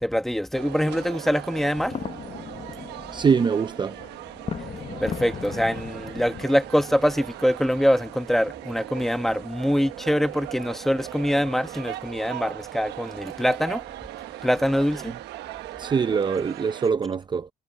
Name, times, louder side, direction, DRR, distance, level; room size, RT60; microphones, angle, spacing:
voice 1, 0.0-1.9 5.0-13.8 14.4-15.1, equal, ahead, 1.3 m, -24 dB
sound 1, 0.5-16.9, right 15 dB, 85° right, 1.2 m, -39 dB
sound 2, 1.5-6.4, left 7 dB, 35° left, 1.1 m, -37 dB
voice 2, 3.1-4.0 15.1-15.2 15.8-17.5, right 6 dB, 25° right, 0.7 m, -23 dB
cardioid pair, 110°, 17 cm